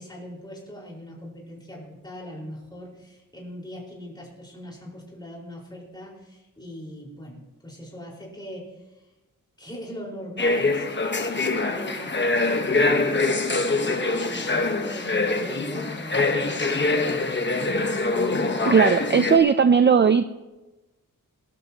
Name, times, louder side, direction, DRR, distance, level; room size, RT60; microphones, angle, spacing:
voice 1, 0.0-9.1 9.6-11.3 11.7-17.9, equal, 10° left, -3 dB, 4.6 m, -41 dB
sound 1, 10.4-19.4, left 3 dB, 35° left, 1.2 m, -24 dB
voice 2, 18.6-20.2, right 6 dB, 35° right, 10 dB, 0.4 m, -17 dB
22.0 x 12.5 x 2.9 m, 1.1 s
wide cardioid pair, 160°, 34 cm